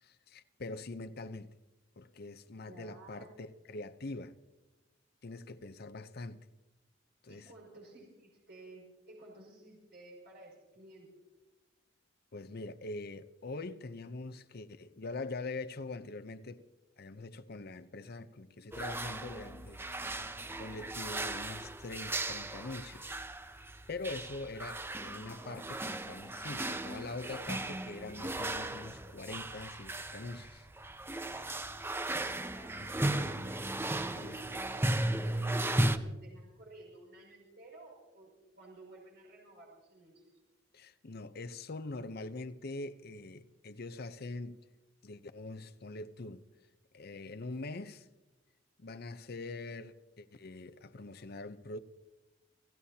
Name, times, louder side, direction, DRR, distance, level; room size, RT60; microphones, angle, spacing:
voice 1, 0.0-1.5 2.0-4.4 5.2-6.5 7.2-7.5 12.3-16.7 17.0-23.2 23.9-30.7 32.8-33.3 34.1-34.4 40.7-44.6 45.0-46.5 46.9-48.1 48.8-51.8, left 2 dB, 55° left, 0.8 m, -43 dB
voice 2, 2.6-3.4 7.3-11.1 32.5-33.8 34.1-40.2, right 2 dB, 60° right, 6.1 m, -54 dB
sound 1, 18.7-36.0, right 1 dB, 10° right, 0.6 m, -36 dB
29.5 x 16.0 x 2.9 m
head